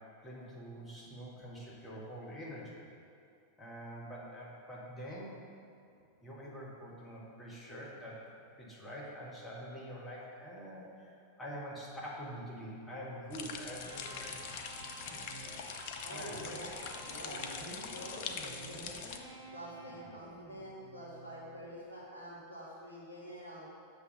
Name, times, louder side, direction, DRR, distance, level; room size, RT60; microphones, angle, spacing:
voice 1, 0.0-2.8 3.6-5.4 6.2-8.2 8.6-14.5 16.1-16.4, equal, 15° left, -6 dB, 1.6 m, -45 dB
sound 1, 13.3-19.2, left 6 dB, 50° left, 0.5 m, -43 dB
Electric guitar, 13.7-21.7, right 1 dB, 75° right, 1.3 m, -50 dB
voice 2, 16.0-16.7 17.0-19.0 19.5-23.7, equal, 80° left, -6 dB, 1.4 m, -47 dB
6.7 x 3.6 x 6.2 m, 2.5 s
figure-of-eight pair, 90°, 0 cm